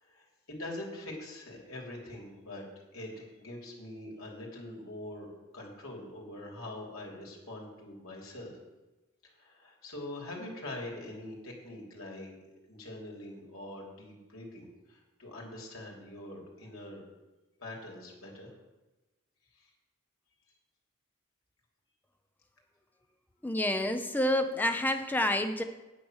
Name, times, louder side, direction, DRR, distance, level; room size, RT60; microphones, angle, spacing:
voice 1, 0.0-2.6 2.9-8.5 9.2-12.3 12.7-17.0 17.6-18.5 19.6-19.7, left 1 dB, 75° left, -1 dB, 3.2 m, -44 dB
voice 2, 23.4-25.6, left 1 dB, 10° left, 7 dB, 0.6 m, -28 dB
9.4 x 8.7 x 6.3 m, 1.1 s
head